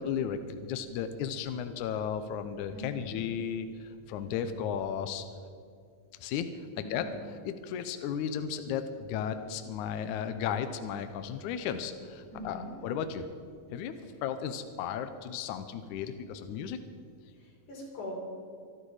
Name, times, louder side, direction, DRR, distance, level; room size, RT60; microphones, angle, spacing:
voice 1, 0.0-5.2 6.2-6.5 6.8-7.1 7.4-13.3 13.7-13.9 14.2-16.8, left 8 dB, 80° left, 9 dB, 1.8 m, -34 dB
voice 2, 2.7-3.1 6.8-7.1 12.3-12.7 17.4-18.1, left 1 dB, 55° left, -2 dB, 5.1 m, -42 dB
24.5 x 11.5 x 4.9 m, 2.2 s
omnidirectional pair, 4.3 m